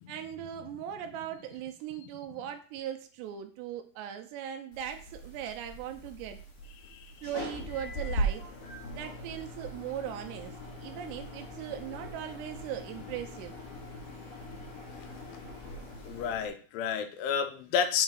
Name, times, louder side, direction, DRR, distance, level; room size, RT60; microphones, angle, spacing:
voice 1, 0.1-6.4 7.2-8.5 8.9-13.5, right 10 dB, 80° right, 5 dB, 2.7 m, -39 dB
sound 1, 4.7-16.5, right 1 dB, 60° left, 3.8 m, -40 dB
voice 2, 16.0-18.0, left 7 dB, 90° left, 8 dB, 3.3 m, -30 dB
7.5 x 4.9 x 6.3 m, 0.43 s
omnidirectional pair, 5.4 m